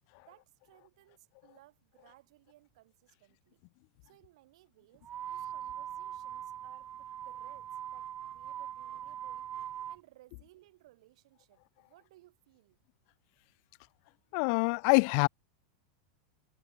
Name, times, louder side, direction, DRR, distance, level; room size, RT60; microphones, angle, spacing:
voice 1, 0.2-3.6 4.0-9.5 9.9-12.8, right 17 dB, 70° right, 7.0 m, -62 dB
sound 1, 5.0-10.0, right 10 dB, 35° right, 1.9 m, -41 dB
voice 2, 14.3-15.3, left 40 dB or more, 55° left, 0.5 m, -25 dB
hypercardioid pair, 105°, 3 cm